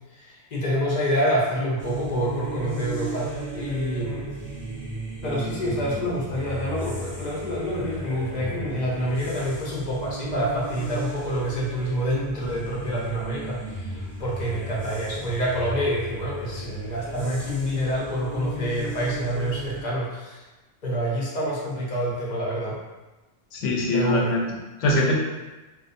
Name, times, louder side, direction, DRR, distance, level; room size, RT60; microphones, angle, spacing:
voice 1, 0.2-4.3 5.2-13.6 13.9-20.4 20.8-22.8 23.9-24.3, equal, 50° left, -5 dB, 0.5 m, -27 dB
sound 1, 1.8-19.8, right 1 dB, 10° right, 0.8 m, -35 dB
voice 2, 23.5-25.2, left 1 dB, 70° left, -2 dB, 0.8 m, -23 dB
2.5 x 2.1 x 2.5 m, 1.1 s
omnidirectional pair, 1.4 m